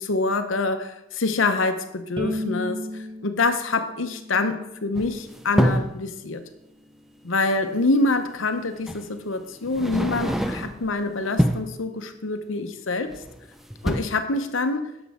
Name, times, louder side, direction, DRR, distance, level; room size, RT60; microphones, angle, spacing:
voice 1, 0.0-6.4 7.2-13.2 13.8-14.9, left 3 dB, 85° left, 8 dB, 0.8 m, -26 dB
Bowed string instrument, 2.2-5.4, left 1 dB, 25° right, 0.9 m, -34 dB
sound 1, 5.0-6.0 7.6-7.7 8.9-9.1 9.6-10.9 11.2-11.8 13.1-13.5 13.7-14.0, equal, ahead, 0.4 m, -25 dB
10.5 x 7.1 x 3.6 m, 0.91 s
head